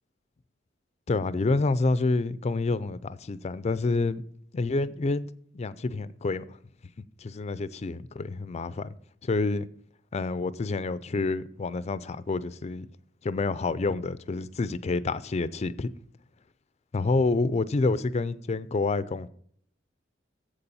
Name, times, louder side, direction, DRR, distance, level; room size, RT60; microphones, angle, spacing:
voice 1, 1.1-4.2 4.5-6.5 7.2-8.9 9.2-9.7 10.1-12.9 13.2-15.9 16.9-19.3, left 3 dB, 35° left, 0.4 m, -28 dB
7.7 x 6.9 x 5.4 m
head